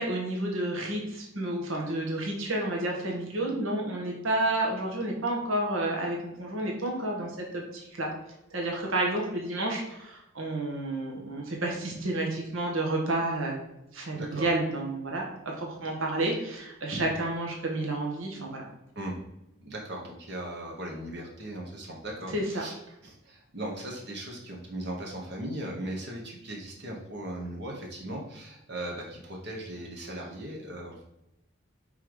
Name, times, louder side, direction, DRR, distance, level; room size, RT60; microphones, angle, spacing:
voice 1, 0.0-8.1 8.5-13.6 13.9-18.7 22.3-22.6, right 1 dB, 75° right, -1 dB, 1.5 m, -30 dB
voice 2, 14.1-14.5 15.8-15.9 18.9-19.1 19.6-31.0, right 1 dB, 55° right, -1 dB, 1.2 m, -38 dB
5.6 x 3.8 x 4.7 m, 0.86 s
head